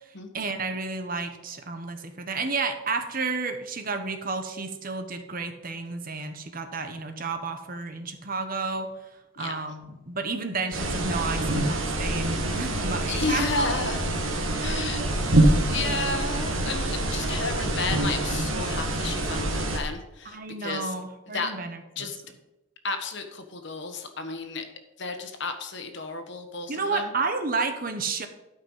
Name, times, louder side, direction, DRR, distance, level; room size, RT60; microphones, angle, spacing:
voice 1, 0.3-8.9 9.4-13.7 14.6-15.1 15.5-16.0 20.2-22.1 26.7-28.3, right 4 dB, 40° right, 7 dB, 1.1 m, -31 dB
sound 1, 10.7-19.8, right 1 dB, 70° right, 1.7 m, -26 dB
voice 2, 13.1-14.0 14.6-15.0 15.7-20.9 21.3-21.5 22.0-22.2 22.8-24.6 25.0-27.0, left 3 dB, 55° left, 6 dB, 1.4 m, -32 dB
12.5 x 5.6 x 5.6 m, 1.0 s
head